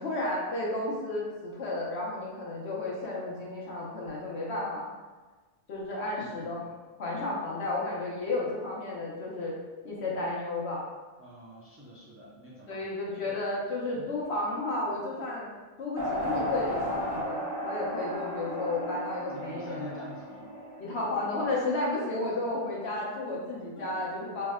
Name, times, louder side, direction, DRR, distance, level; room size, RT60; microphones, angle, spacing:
voice 1, 0.0-4.8 5.7-6.7 7.0-9.6 9.8-10.9 12.7-15.5 15.8-19.9 20.8-24.5, left 2 dB, 90° left, -4 dB, 1.1 m, -32 dB
voice 2, 6.2-6.5 11.2-13.4 14.0-14.1 19.3-20.5 23.8-24.0, left 1 dB, 20° right, -6 dB, 0.4 m, -47 dB
sound 1, 16.0-21.9, equal, 50° right, 0.8 m, -35 dB
3.3 x 2.1 x 3.5 m, 1.3 s
omnidirectional pair, 1.1 m